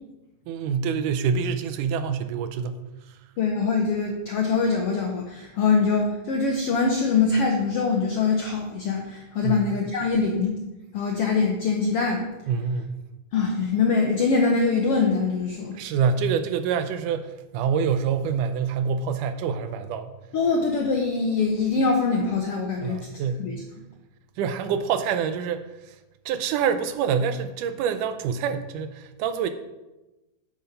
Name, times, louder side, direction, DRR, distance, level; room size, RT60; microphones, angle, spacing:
voice 1, 0.5-2.8 9.4-9.7 12.5-12.9 15.7-20.2 22.8-23.4 24.4-26.0 26.3-29.5, right 6 dB, 80° right, 2.1 m, -26 dB
voice 2, 3.4-10.6 10.9-12.2 13.3-15.8 20.3-23.0 23.4-23.6, left 4 dB, 75° left, 1.3 m, -23 dB
8.5 x 7.9 x 5.2 m
omnidirectional pair, 3.8 m